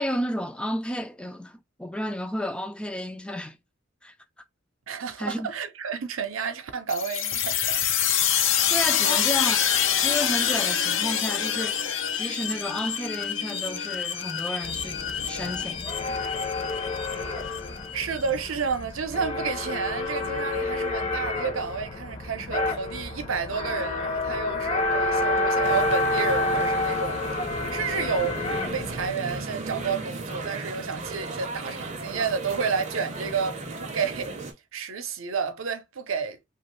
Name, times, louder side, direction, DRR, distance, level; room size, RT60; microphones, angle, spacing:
voice 1, 0.0-3.6 4.0-4.1 5.2-5.5 8.7-9.6 10.0-11.9 12.1-16.3, equal, 5° left, 0.3 m, -32 dB
voice 2, 4.9-8.0 9.0-9.2 17.9-34.4 34.7-36.4, right 5 dB, 75° right, 0.6 m, -31 dB
sound 1, 6.9-18.3, left 9 dB, 70° left, 0.6 m, -26 dB
sound 2, 14.6-29.1, left 2 dB, 30° left, 0.7 m, -29 dB
sound 3, 25.6-34.5, right 3 dB, 35° right, 0.6 m, -36 dB
3.0 x 2.4 x 3.1 m
head